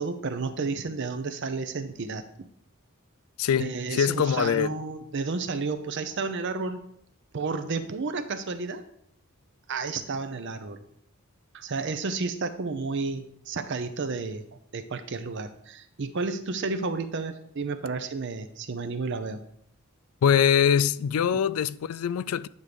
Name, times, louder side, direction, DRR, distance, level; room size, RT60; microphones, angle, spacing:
voice 1, 0.0-2.2 3.6-6.8 7.3-8.8 9.7-10.8 11.5-14.4 14.7-19.4 21.3-21.4, right 4 dB, 55° right, 0.6 m, -31 dB
voice 2, 3.4-4.7 20.2-22.5, left 8 dB, 80° left, 0.4 m, -23 dB
9.3 x 3.7 x 6.6 m
head